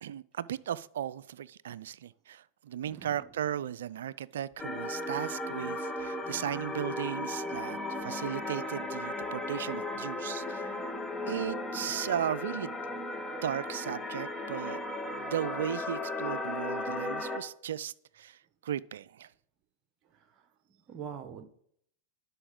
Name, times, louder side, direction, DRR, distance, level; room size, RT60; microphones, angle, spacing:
voice 1, 0.0-10.7 11.3-12.7 13.4-14.8 15.1-19.3, right 10 dB, 70° right, 0.3 m, -36 dB
voice 2, 2.8-3.3 20.0-20.5 20.9-21.5, right 7 dB, 40° right, 1.0 m, -44 dB
sound 1, 4.6-17.4, left 2 dB, 10° left, 1.0 m, -36 dB
11.0 x 5.6 x 3.7 m
hypercardioid pair, 95°, 0 cm